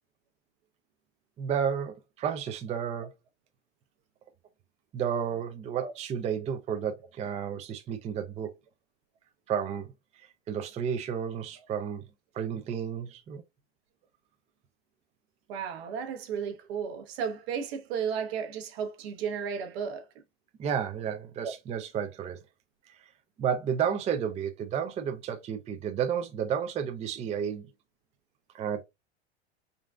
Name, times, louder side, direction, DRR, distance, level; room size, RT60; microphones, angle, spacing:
voice 1, 1.4-3.1 4.9-8.5 9.5-9.9 10.5-12.0 12.3-13.4 20.6-22.4 22.9-23.0 23.4-27.7 28.5-28.8, right 8 dB, 20° right, 0.4 m, -32 dB
voice 2, 15.5-20.1 21.4-21.5, right 7 dB, 70° right, 0.9 m, -34 dB
3.8 x 2.4 x 2.2 m
hypercardioid pair, 105°, 32 cm